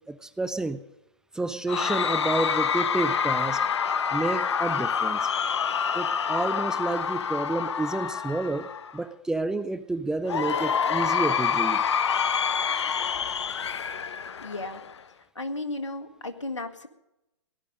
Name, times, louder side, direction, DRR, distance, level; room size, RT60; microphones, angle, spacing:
voice 1, 0.1-0.8 1.3-3.6 4.1-5.3 5.9-11.8, right 2 dB, 5° right, 12 dB, 0.5 m, -30 dB
Cheering / Crowd, 1.7-9.0 10.3-15.0, left 7 dB, 70° left, 0.8 m, -27 dB
voice 2, 14.4-14.8 15.4-16.9, left 2 dB, 85° left, 6 dB, 1.8 m, -34 dB
18.0 x 11.5 x 5.3 m, 0.91 s
figure-of-eight pair, 125°, 15 cm